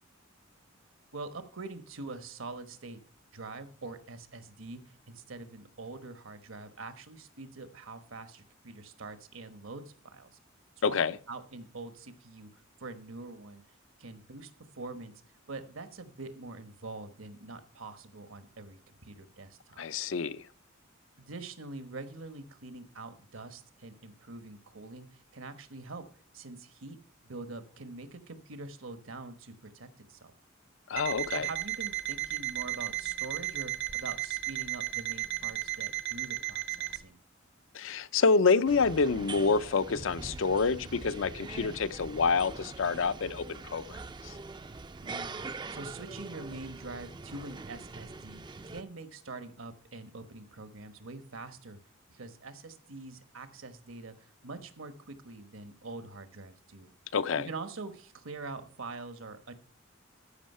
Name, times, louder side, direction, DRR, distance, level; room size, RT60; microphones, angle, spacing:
voice 1, 1.1-3.0 3.3-10.3 10.8-11.0 11.3-13.6 14.0-15.1 15.5-19.8 21.2-26.0 26.3-27.0 27.2-30.3 31.3-37.2 45.0-51.8 52.1-56.9 57.3-59.5, right 3 dB, 75° right, 1.2 m, -44 dB
voice 2, 10.8-11.2 19.8-20.4 30.9-31.5 37.7-44.0 44.2-44.3 57.1-57.5, left 4 dB, 65° left, 0.5 m, -27 dB
Alarm, 31.0-37.0, right 16 dB, 60° right, 0.8 m, -35 dB
sound 1, 38.7-48.8, right 3 dB, 20° right, 0.4 m, -43 dB
13.5 x 5.5 x 5.5 m
head